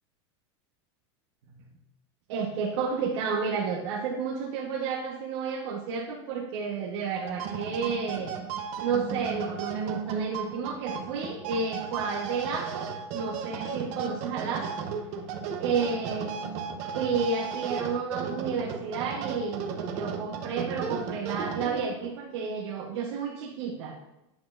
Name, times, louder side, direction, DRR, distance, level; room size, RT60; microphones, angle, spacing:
voice 1, 2.3-8.3 8.8-14.8 15.6-16.4 16.9-24.1, right 5 dB, 70° right, -3 dB, 1.2 m, -31 dB
sound 1, 7.1-22.1, right 6 dB, 50° right, 0.9 m, -35 dB
9.5 x 6.1 x 2.5 m, 0.92 s
supercardioid pair, 140°, 15 cm